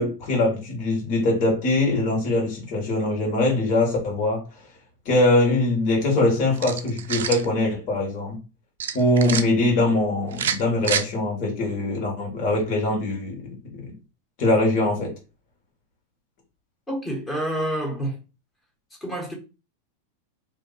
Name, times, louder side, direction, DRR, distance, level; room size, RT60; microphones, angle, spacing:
voice 1, 0.0-4.4 5.1-8.4 8.9-13.4 13.8-13.9 14.4-15.1, left 2 dB, 50° left, 1.7 m, -22 dB
sound 1, 6.5-7.5 8.8-9.4 10.3-11.0, right 8 dB, 85° right, 0.4 m, -27 dB
voice 2, 16.9-18.2 19.0-19.3, right 1 dB, 10° left, 1.3 m, -28 dB
2.7 x 2.5 x 4.1 m
hypercardioid pair, 125°, 0 cm